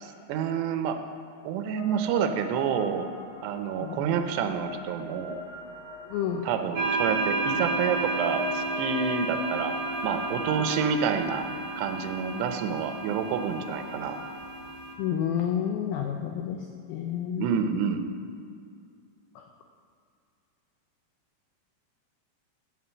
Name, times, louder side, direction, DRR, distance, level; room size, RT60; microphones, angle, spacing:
voice 1, 0.0-1.0 1.4-3.1 3.4-5.4 6.4-9.8 10.0-11.5 11.8-14.2 17.4-18.0, right 7 dB, 80° right, 7 dB, 2.8 m, -28 dB
sound 1, 1.6-14.3, left 2 dB, 55° left, 2.9 m, -43 dB
voice 2, 6.1-6.4 15.0-16.6 16.9-17.5 19.4-19.5, left 9 dB, 90° left, 3 dB, 2.1 m, -29 dB
sound 2, 6.7-14.9, right 3 dB, 50° right, 2.2 m, -32 dB
8.2 x 7.8 x 7.2 m, 2.3 s
omnidirectional pair, 5.0 m